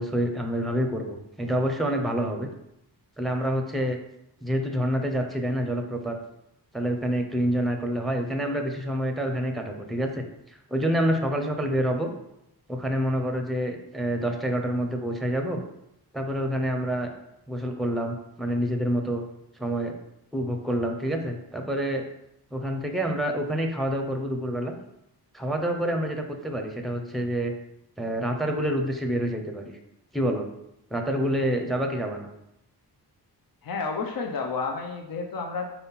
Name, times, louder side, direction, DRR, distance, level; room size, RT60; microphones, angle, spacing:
voice 1, 0.0-2.5 3.2-4.0 4.4-6.2 6.7-10.2 10.7-12.1 12.7-15.6 16.1-17.1 17.5-19.2 19.6-19.9 20.3-22.0 22.5-24.7 25.3-27.5 28.0-29.8 30.1-30.5 30.9-32.3, equal, ahead, 4 dB, 0.7 m, -27 dB
voice 2, 33.6-35.7, left 4 dB, 60° left, 3 dB, 0.8 m, -31 dB
4.5 x 4.2 x 5.6 m, 0.84 s
wide cardioid pair, 135°, 40 cm